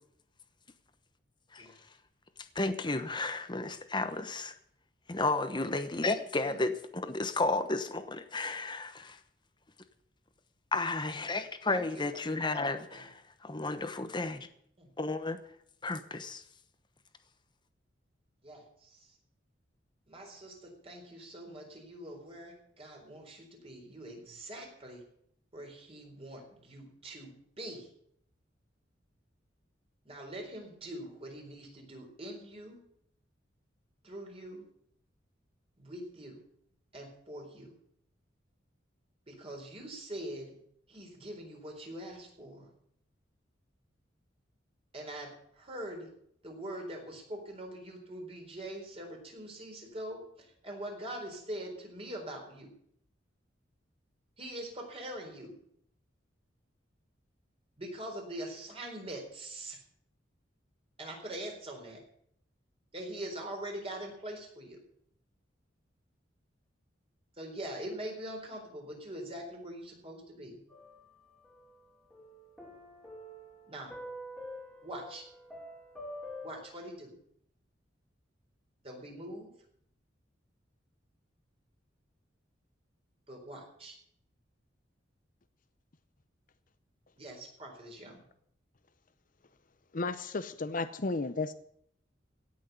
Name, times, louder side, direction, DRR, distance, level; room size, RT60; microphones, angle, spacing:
voice 1, 2.5-4.5 5.1-9.2 10.7-13.1 13.4-14.5 15.0-15.4 15.8-16.4, left 2 dB, 25° left, 10 dB, 1.1 m, -32 dB
voice 2, 11.7-12.2 12.9-13.1 14.8-14.9 18.4-19.2 20.1-25.0 25.5-27.9 30.0-32.8 34.0-34.7 35.8-36.4 36.9-37.7 39.3-40.6 40.9-42.7 44.9-46.1 46.4-52.7 54.4-55.5 57.8-59.8 61.0-62.0 62.9-64.8 67.4-70.6 73.7-73.9 74.8-75.3 76.4-77.1 78.8-79.5 83.3-84.0 87.2-88.2, right 1 dB, 30° right, 1 dB, 4.2 m, -43 dB
sound 1, 70.7-71.8 72.1-76.6, left 1 dB, ahead, 3.0 m, -46 dB
voice 3, 89.9-91.5, left 3 dB, 45° left, 11 dB, 0.7 m, -33 dB
17.0 x 6.3 x 9.3 m, 0.69 s
head